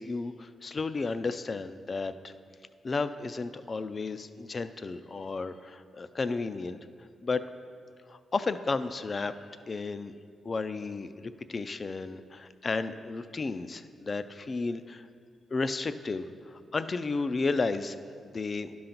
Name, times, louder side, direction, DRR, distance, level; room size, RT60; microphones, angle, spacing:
voice 1, 0.0-2.3 2.8-6.8 7.2-7.4 8.1-9.4 9.7-10.1 10.4-15.1 15.5-18.7, left 3 dB, 35° left, 12 dB, 0.3 m, -33 dB
11.0 x 3.9 x 5.8 m, 2.2 s
cardioid pair, 120°, 0 cm